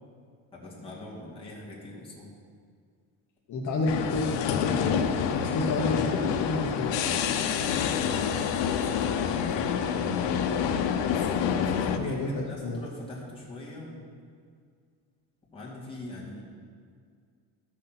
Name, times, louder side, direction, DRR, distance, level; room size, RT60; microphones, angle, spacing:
voice 1, 0.5-2.3 7.8-9.9 11.1-14.0 15.5-16.4, left 2 dB, 10° left, -6 dB, 2.3 m, -42 dB
voice 2, 3.5-5.0 5.4-7.0 12.0-12.8, left 2 dB, 45° left, -2 dB, 1.1 m, -30 dB
sound 1, 3.9-12.0, left 8 dB, 85° left, 0.9 m, -27 dB
13.5 x 6.4 x 5.9 m, 2.1 s
cardioid pair, 170°, 42 cm